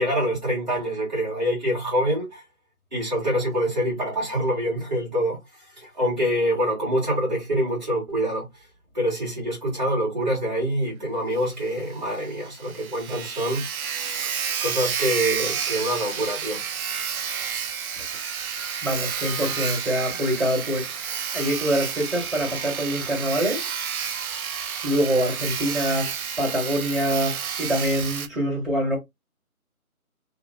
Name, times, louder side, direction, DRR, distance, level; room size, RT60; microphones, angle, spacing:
voice 1, 0.0-2.4 2.9-5.4 5.7-8.5 8.9-13.7 14.6-16.6, equal, 30° right, 1.4 m, -25 dB
Sawing, 11.4-11.5 11.8-11.9 12.3-12.4 12.5-28.3, right 7 dB, 70° right, 0.5 m, -30 dB
voice 2, 18.8-23.7 24.8-29.0, equal, ahead, 1.2 m, -25 dB
2.8 x 2.4 x 2.3 m
figure-of-eight pair, 165°, 44 cm